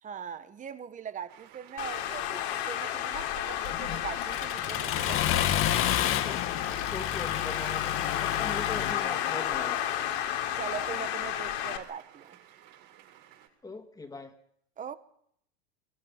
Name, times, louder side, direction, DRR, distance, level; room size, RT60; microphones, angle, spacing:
voice 1, 0.0-6.0 10.5-12.4 14.8-15.0, right 8 dB, 25° right, 1.5 m, -41 dB
sound 1, 1.3-13.5, right 11 dB, 55° right, 7.0 m, -55 dB
Traffic noise roadway noise, 1.8-11.8, left 11 dB, 70° left, 3.5 m, -32 dB
Accelerating revving vroom, 3.7-8.9, left 11 dB, 40° left, 1.9 m, -30 dB
voice 2, 6.9-9.8 13.6-14.3, left 3 dB, 10° left, 2.5 m, -40 dB
25.5 x 23.5 x 5.9 m
supercardioid pair, 125°, 32 cm